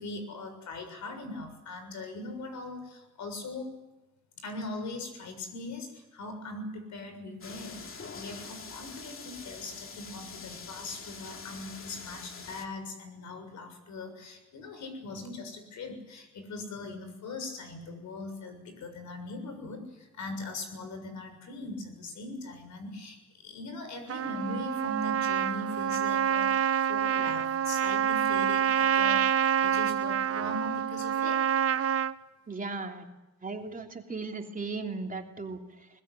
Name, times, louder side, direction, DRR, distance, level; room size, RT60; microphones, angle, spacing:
voice 1, 0.0-3.8 4.4-31.4, left 2 dB, 70° left, 8 dB, 6.9 m, -40 dB
sound 1, 7.4-12.7, left 5 dB, 45° left, 2.8 m, -45 dB
Trumpet, 24.1-32.1, right 9 dB, 50° right, 1.0 m, -27 dB
voice 2, 32.5-33.1 33.4-35.9, right 3 dB, 25° right, 3 dB, 3.0 m, -37 dB
21.5 x 21.0 x 9.8 m, 1.1 s
cardioid pair, 90°, 30 cm